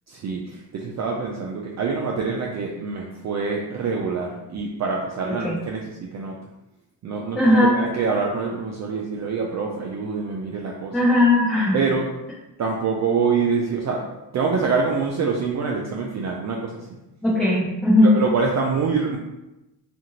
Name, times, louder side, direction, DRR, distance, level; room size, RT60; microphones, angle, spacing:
voice 1, 0.1-6.4 7.0-11.0 11.7-12.1 12.6-14.1 14.3-17.0 18.0-19.2, right 5 dB, 40° right, -1 dB, 0.4 m, -25 dB
voice 2, 7.4-7.8 10.9-11.8 17.2-18.1, left 1 dB, ahead, -7 dB, 0.7 m, -17 dB
2.5 x 2.5 x 2.8 m, 0.97 s
hypercardioid pair, 55°, 46 cm